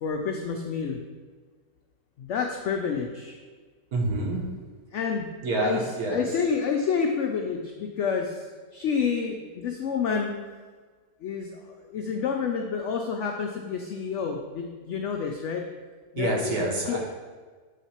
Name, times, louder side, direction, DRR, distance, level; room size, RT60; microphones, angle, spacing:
voice 1, 0.0-1.0 2.2-3.4 4.9-5.8 6.1-8.4 8.7-10.3 11.2-15.6 16.1-16.5 16.9-17.0, left 6 dB, 85° left, 2 dB, 0.6 m, -29 dB
voice 2, 3.9-4.4 5.4-6.2 16.2-17.0, right 2 dB, 65° right, -1 dB, 1.5 m, -27 dB
7.3 x 3.3 x 4.3 m, 1.4 s
omnidirectional pair, 1.8 m